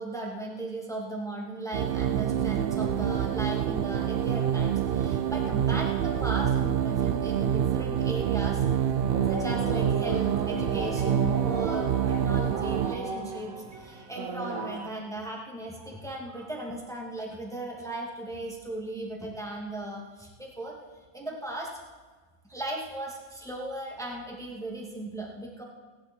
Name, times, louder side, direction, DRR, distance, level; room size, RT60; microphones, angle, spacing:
voice 1, 0.0-8.6 9.2-20.7 21.1-21.7 22.5-25.6, right 1 dB, ahead, -1 dB, 2.4 m, -37 dB
sound 1, 1.7-13.0, right 9 dB, 80° right, 0.5 m, -27 dB
sound 2, 8.7-14.9, right 4 dB, 60° right, 1.8 m, -35 dB
30.0 x 10.5 x 4.6 m, 1.4 s
omnidirectional pair, 1.7 m